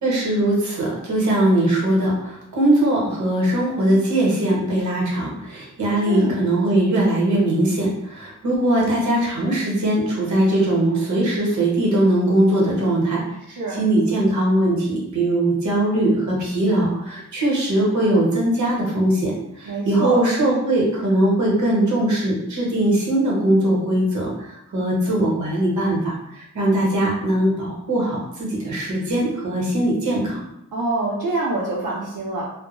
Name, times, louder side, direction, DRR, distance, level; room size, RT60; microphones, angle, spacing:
voice 1, 0.0-13.2 13.7-30.4, right 1 dB, 65° right, -3 dB, 0.9 m, -20 dB
voice 2, 6.1-6.4 13.5-13.8 19.7-20.2 30.7-32.4, right 2 dB, 90° right, -6 dB, 0.6 m, -25 dB
2.2 x 2.0 x 2.9 m, 0.81 s
wide cardioid pair, 140°, 31 cm